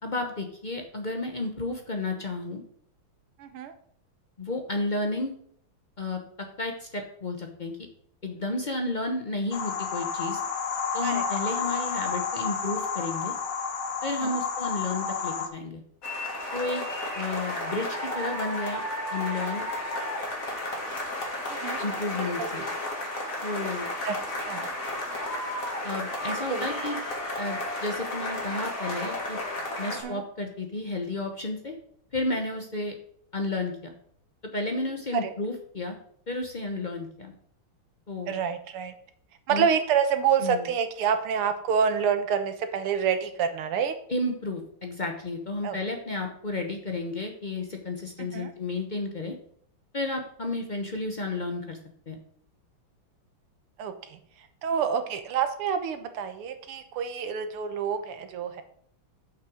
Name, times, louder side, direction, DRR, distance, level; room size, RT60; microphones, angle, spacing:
voice 1, 0.0-2.6 4.4-5.3 6.0-6.2 6.6-7.7 8.2-10.4 10.9-13.3 14.0-15.8 16.5-16.8 17.2-18.8 19.1-19.6 21.8-22.7 23.4-23.9 25.8-27.0 27.4-29.4 29.8-31.7 32.1-33.0 33.3-33.9 34.5-36.0 36.3-37.3 38.1-38.3 39.5-39.7 40.4-40.7 44.1-49.3 49.9-51.8 52.1-52.2, left 2 dB, 75° left, 3 dB, 0.4 m, -32 dB
voice 2, 3.4-3.7 11.0-11.2 14.2-14.4 21.5-21.8 22.2-22.7 24.0-24.7 26.5-26.7 29.9-30.2 35.2-35.3 38.3-38.9 39.5-43.9 45.6-45.8 48.2-48.5 53.8-58.6, right 7 dB, 80° right, 8 dB, 1.9 m, -28 dB
sound 1, 9.5-15.5, left 6 dB, 60° left, 1.6 m, -30 dB
sound 2, 16.0-30.0, left 1 dB, 40° left, 2.3 m, -33 dB
7.4 x 6.0 x 6.2 m, 0.66 s
omnidirectional pair, 2.4 m